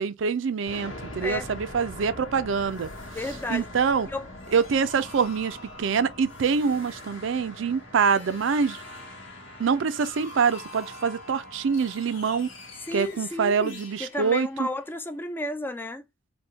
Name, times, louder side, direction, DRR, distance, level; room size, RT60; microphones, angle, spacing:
voice 1, 0.0-2.9 3.5-4.1 4.5-8.8 9.6-12.5 12.9-14.7, right 6 dB, 70° right, 0.4 m, -25 dB
sound 1, 0.7-15.3, left 1 dB, 85° left, 1.1 m, -43 dB
voice 2, 3.1-3.7 4.1-4.3 12.9-16.0, left 1 dB, 10° left, 0.3 m, -33 dB
3.5 x 2.2 x 2.7 m
head